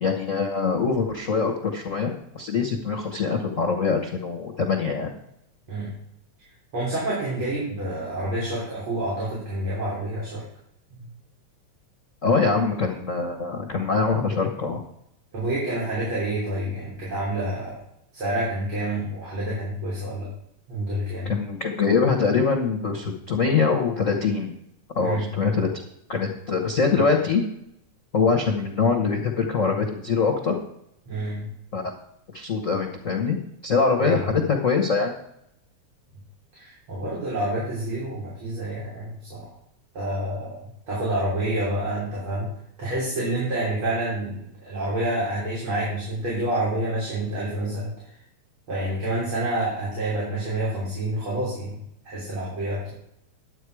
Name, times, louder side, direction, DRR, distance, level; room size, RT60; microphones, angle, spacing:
voice 1, 0.0-5.1 12.2-14.8 21.2-24.5 24.9-25.7 26.1-27.4 28.1-30.6 31.7-31.9 32.3-33.4 33.6-35.1, left 5 dB, 90° left, 3 dB, 0.7 m, -23 dB
voice 2, 6.7-10.4 10.9-11.1 15.3-17.8 18.1-20.3 20.7-21.3 25.0-25.3 31.1-31.5 34.0-34.3 36.5-39.5 39.9-40.6 40.9-42.5 42.8-47.9 48.7-51.8 52.0-52.9, right 1 dB, 45° right, -7 dB, 4.1 m, -28 dB
11.0 x 8.5 x 4.8 m, 0.77 s
omnidirectional pair, 3.3 m